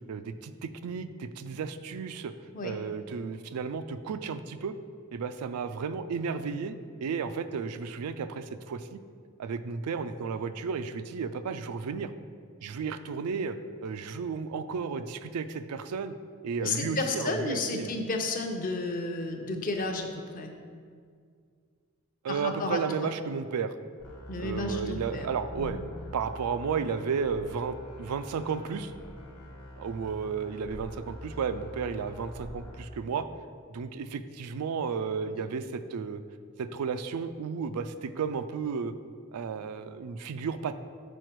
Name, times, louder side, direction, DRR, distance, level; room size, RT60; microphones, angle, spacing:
voice 1, 0.1-2.3 2.6-4.7 5.1-6.8 7.0-9.0 9.4-12.1 12.6-13.6 13.8-16.1 16.4-18.0 22.2-23.7 24.4-25.8 26.1-28.9 29.8-33.2 33.7-36.2 36.6-38.9 39.3-40.7, right 5 dB, 90° right, 11 dB, 0.4 m, -33 dB
voice 2, 16.6-20.5 22.3-23.1 24.3-25.3 25.5-25.8, left 2 dB, 40° left, 4 dB, 0.6 m, -32 dB
sound 1, 24.0-32.9, left 1 dB, 70° left, 1.2 m, -45 dB
6.3 x 4.9 x 4.5 m, 2.1 s
head